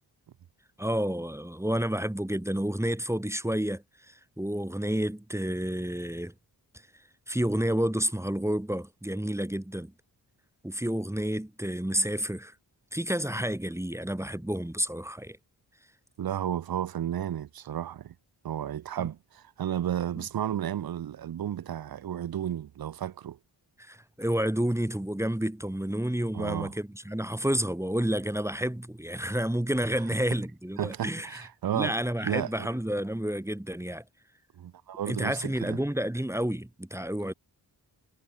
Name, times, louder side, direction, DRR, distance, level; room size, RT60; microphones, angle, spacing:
voice 1, 0.8-6.3 7.3-9.9 10.6-12.5 12.9-15.4 19.0-19.1 23.8-31.5 31.7-34.0 35.1-37.3, equal, 5° right, 1.2 m, -30 dB
voice 2, 16.2-18.1 18.4-23.4 26.3-26.7 30.8-31.9 32.2-32.7 34.6-35.8, right 10 dB, 55° right, 0.6 m, -33 dB
cardioid pair, 45°, 43 cm